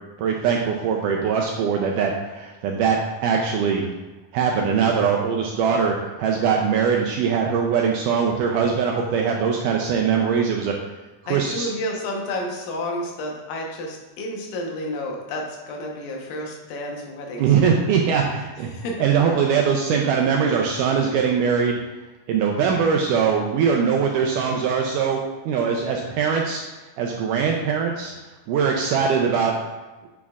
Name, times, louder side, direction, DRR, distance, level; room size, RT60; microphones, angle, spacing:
voice 1, 0.2-3.8 4.3-10.7 11.2-11.7 17.4-18.7 19.0-21.8 22.3-25.2 25.5-26.6 27.0-28.1 28.5-29.6, right 6 dB, 80° right, 0 dB, 2.0 m, -21 dB
voice 2, 11.3-17.7 18.6-19.0, left 1 dB, 75° left, 0 dB, 2.7 m, -31 dB
8.5 x 6.9 x 2.4 m, 1.2 s
omnidirectional pair, 4.0 m